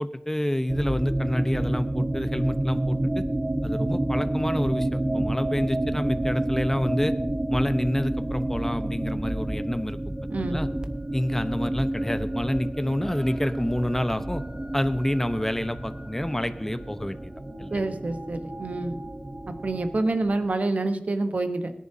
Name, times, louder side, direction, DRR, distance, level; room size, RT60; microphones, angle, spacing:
voice 1, 0.0-3.2 3.6-7.2 7.5-10.0 10.4-10.7 11.1-14.4 14.7-17.3 17.6-17.8, left 1 dB, 15° left, 10 dB, 0.8 m, -28 dB
sound 1, 0.7-20.5, right 1 dB, 30° right, 0.9 m, -29 dB
voice 2, 17.7-19.0 19.6-21.7, right 2 dB, 70° right, 8 dB, 1.0 m, -27 dB
20.5 x 10.5 x 2.7 m, 0.77 s
wide cardioid pair, 60°, 3 cm